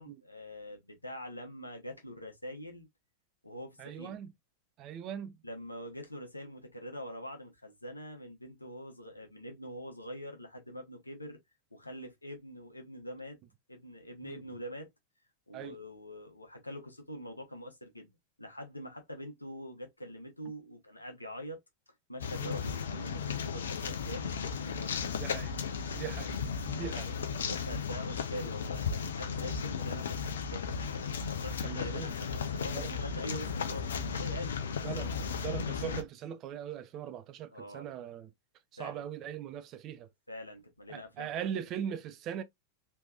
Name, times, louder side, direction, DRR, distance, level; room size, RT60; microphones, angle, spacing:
voice 1, 0.0-2.9 3.4-4.2 5.4-11.4 11.7-13.4 13.7-14.9 15.5-18.1 18.4-21.6 22.1-25.0 26.7-30.7 30.9-35.0 37.5-37.9 38.8-39.0 40.3-41.5, equal, 85° left, 0.9 m, -44 dB
voice 2, 3.8-4.3 4.8-5.4 14.2-14.4 15.5-15.8 22.4-22.6 25.2-25.5 25.9-27.2 29.9-30.0 31.6-32.1 32.7-33.0 34.8-38.3 38.7-40.1 40.9-42.4, right 9 dB, 35° right, 0.5 m, -40 dB
sound 1, 22.2-36.0, left 6 dB, 65° left, 0.6 m, -35 dB
3.4 x 3.0 x 2.3 m
figure-of-eight pair, 90°, 0 cm